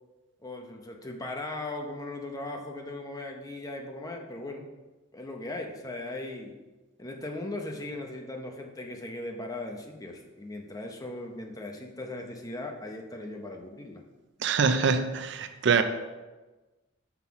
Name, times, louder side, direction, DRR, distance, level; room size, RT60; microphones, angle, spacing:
voice 1, 0.4-4.7 5.1-6.6 7.0-14.0, left 2 dB, 20° left, 2 dB, 0.7 m, -38 dB
voice 2, 14.4-15.8, right 5 dB, 60° right, 9 dB, 0.5 m, -24 dB
5.9 x 5.6 x 4.7 m, 1.2 s
head